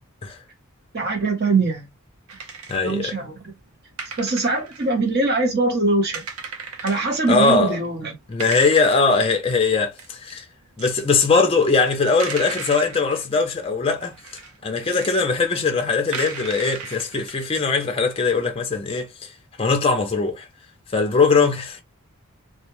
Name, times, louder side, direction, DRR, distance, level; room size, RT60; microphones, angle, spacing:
voice 1, 0.9-1.9 2.8-3.4 4.2-6.2 6.8-8.1, right 3 dB, 50° right, 0.9 m, -22 dB
sound 1, 2.3-2.9 3.7-3.8 4.0-5.4 5.7-5.8 6.1-7.4 7.8-7.9 8.4-9.0 10.0-10.3 10.8-11.5 11.7-13.3 14.0-15.2 15.5-15.6 16.1-17.6, right 5 dB, 80° right, 0.6 m, -36 dB
voice 2, 2.7-3.3 7.3-7.8 8.3-10.4 10.8-14.2 14.6-19.3 19.6-20.5 20.9-21.8, left 4 dB, 25° left, 0.4 m, -20 dB
2.3 x 2.1 x 2.9 m
head